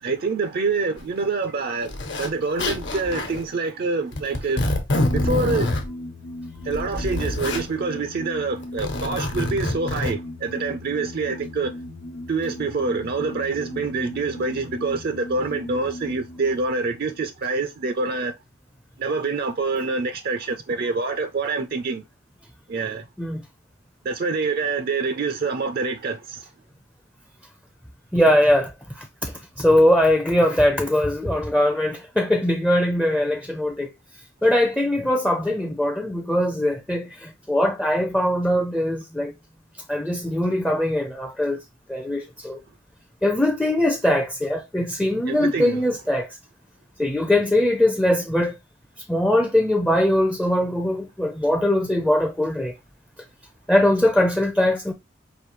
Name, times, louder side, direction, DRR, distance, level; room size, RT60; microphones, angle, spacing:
voice 1, 0.0-4.7 5.1-5.7 6.6-11.7 12.3-18.3 19.0-22.0 22.7-23.0 24.0-26.4 45.2-45.8, right 4 dB, 50° right, 0.4 m, -26 dB
Zipper (clothing), 1.0-1.1 1.9-2.3 2.6-3.4 4.1-5.9 6.6-7.6 8.6-10.1, left 1 dB, 65° left, 1.1 m, -26 dB
sound 1, 5.0-18.2, left 1 dB, 85° left, 1.0 m, -38 dB
voice 2, 28.1-28.7 29.0-33.9 34.4-39.3 39.9-41.6 41.9-42.6 43.2-46.3 47.0-48.5 49.1-52.7 53.7-54.9, left 1 dB, 5° left, 0.5 m, -21 dB
4.9 x 2.7 x 3.0 m
head